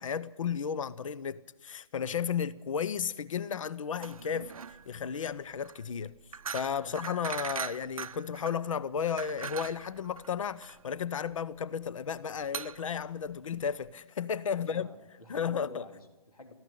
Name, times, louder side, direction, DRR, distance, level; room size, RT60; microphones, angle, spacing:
voice 1, 0.0-4.6 4.9-6.1 6.5-14.9 15.3-15.8, left 7 dB, 65° left, 0.7 m, -33 dB
sound 1, 3.9-13.9, right 6 dB, 75° right, 0.7 m, -42 dB
voice 2, 14.4-16.5, left 2 dB, 85° left, 3.3 m, -49 dB
18.5 x 15.0 x 9.9 m
figure-of-eight pair, 135°, 18 cm